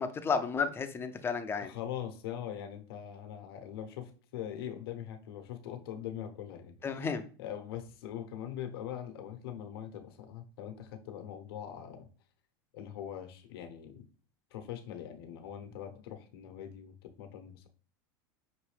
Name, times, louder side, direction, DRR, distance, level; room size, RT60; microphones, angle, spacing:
voice 1, 0.0-1.7 6.8-7.2, left 5 dB, 20° left, 8 dB, 0.5 m, -32 dB
voice 2, 1.6-7.1 7.4-12.1 12.7-14.0 14.5-17.7, left 10 dB, 80° left, 6 dB, 0.9 m, -42 dB
6.1 x 2.7 x 3.2 m, 0.39 s
supercardioid pair, 130°, 13 cm